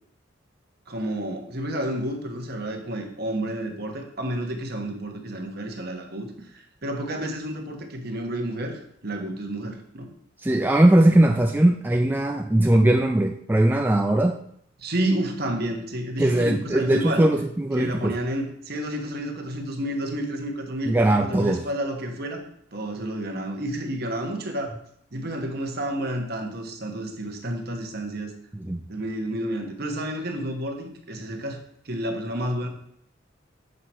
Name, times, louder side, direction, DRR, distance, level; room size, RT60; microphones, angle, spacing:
voice 1, 0.9-6.3 6.5-10.1 14.8-17.2 17.8-20.9 21.2-22.4 22.7-24.7 25.1-28.3 28.9-31.6 31.8-32.7, right 1 dB, 50° right, 3 dB, 1.2 m, -30 dB
voice 2, 10.4-14.4 16.2-18.2 20.9-21.6 28.5-28.8, right 1 dB, 10° right, 3 dB, 0.3 m, -20 dB
6.6 x 5.8 x 4.5 m, 0.68 s
head